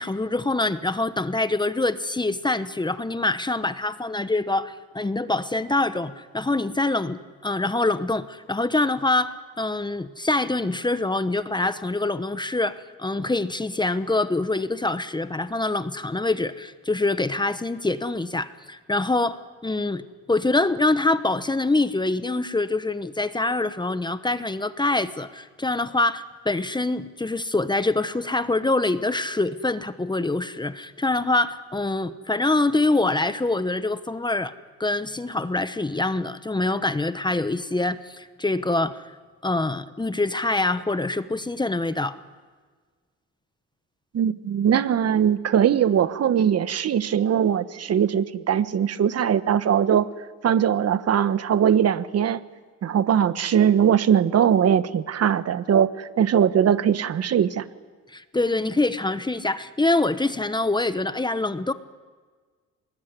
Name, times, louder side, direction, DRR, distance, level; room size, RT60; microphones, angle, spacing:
voice 1, 0.0-20.0 20.3-34.5 34.8-39.1 39.4-42.2 58.1-61.7, left 2 dB, 15° left, 12 dB, 1.0 m, -25 dB
voice 2, 44.1-50.1 50.4-52.4 52.8-57.6, right 8 dB, 55° right, 14 dB, 1.2 m, -21 dB
24.5 x 20.5 x 9.8 m, 1.5 s
cardioid pair, 90°, 30 cm